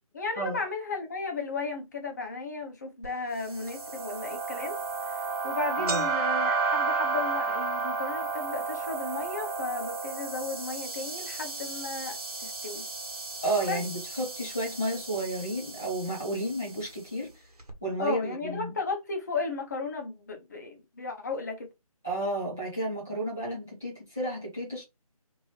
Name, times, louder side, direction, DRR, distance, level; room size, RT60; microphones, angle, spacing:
voice 1, 0.1-4.8 5.1-12.8 13.7-13.8 18.0-21.7, left 4 dB, 30° left, 0.7 m, -35 dB
sound 1, 3.0-3.1 3.7-3.8 4.6-4.8 5.1-5.2 5.5-13.7 14.0-14.7 15.5-15.6 16.6-16.7 16.9-17.0 17.6-17.7, right 4 dB, 80° right, 1.1 m, -42 dB
sound 2, 3.4-16.8, right 4 dB, 40° right, 1.5 m, -33 dB
voice 2, 5.8-6.1 13.4-17.3 17.8-18.8 22.0-24.8, right 1 dB, 5° right, 0.4 m, -32 dB
3.1 x 2.6 x 3.1 m
figure-of-eight pair, 155°, 19 cm